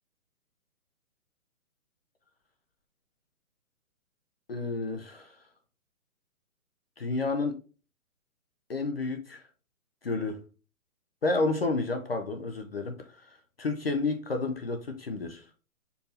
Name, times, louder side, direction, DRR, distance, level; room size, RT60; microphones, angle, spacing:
voice 1, 4.5-5.4 7.0-7.6 8.7-9.4 10.0-10.4 11.2-15.4, left 3 dB, 45° left, 0.4 m, -31 dB
4.5 x 2.6 x 3.2 m
hypercardioid pair, 160°, 44 cm